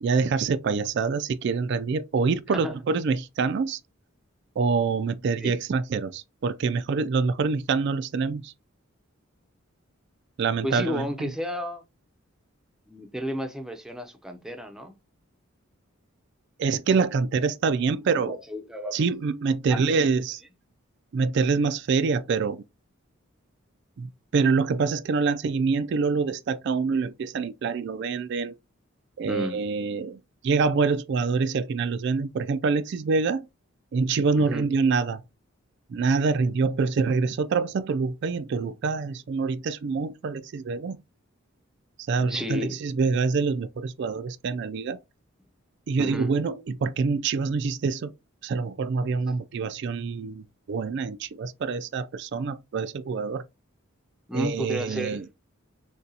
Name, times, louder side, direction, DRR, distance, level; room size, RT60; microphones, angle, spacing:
voice 1, 0.0-3.8 4.6-8.5 10.4-11.3 16.6-18.4 18.9-20.4 21.1-22.6 24.0-28.5 29.2-30.2 30.4-33.4 33.9-35.2 35.9-41.0 42.1-45.0 45.9-48.1 48.4-53.4 54.3-55.2, right 4 dB, 55° right, 0.3 m, -26 dB
voice 2, 10.6-11.8 12.9-14.9 18.0-19.0 19.7-19.8 29.3-29.6 34.4-34.6 42.3-42.8 46.0-46.3 54.3-55.2, left 1 dB, 5° right, 0.5 m, -32 dB
6.4 x 2.3 x 2.7 m
head